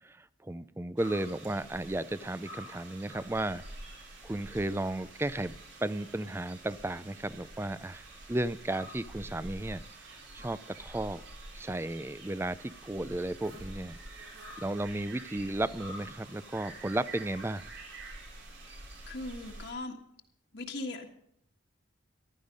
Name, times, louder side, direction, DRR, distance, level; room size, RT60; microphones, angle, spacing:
voice 1, 0.0-3.6 4.2-11.2 11.5-14.0 14.6-17.6, right 1 dB, 15° right, 16 dB, 0.4 m, -34 dB
sound 1, 1.0-19.7, right 2 dB, 80° right, 3.8 m, -47 dB
voice 2, 19.1-20.0 20.5-21.1, left 2 dB, 60° left, 1 dB, 1.6 m, -38 dB
15.0 x 12.0 x 5.2 m, 0.75 s
head